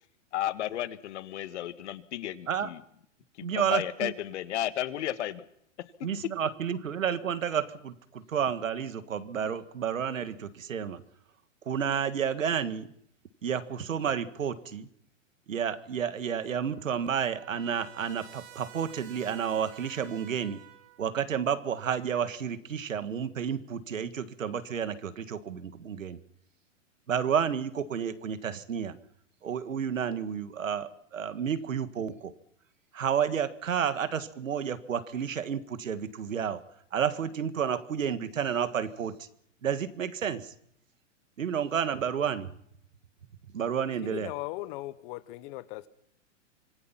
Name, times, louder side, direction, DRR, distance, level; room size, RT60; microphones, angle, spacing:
voice 1, 0.3-2.8 3.4-5.5 5.8-5.9, left 12 dB, 65° left, 1.7 m, -33 dB
voice 2, 3.4-4.1 6.0-11.0 11.7-12.9 13.4-14.9 15.5-20.6 21.0-26.2 27.1-29.0 29.4-32.3 32.9-36.6 36.9-39.1 39.6-40.5 41.4-42.5 43.5-44.3, right 8 dB, 90° right, 1.9 m, -31 dB
Trumpet, 16.3-21.0, right 11 dB, 60° right, 4.2 m, -52 dB
voice 3, 44.0-45.9, left 18 dB, 45° left, 1.3 m, -38 dB
25.5 x 21.0 x 5.8 m
hypercardioid pair, 125°, 38 cm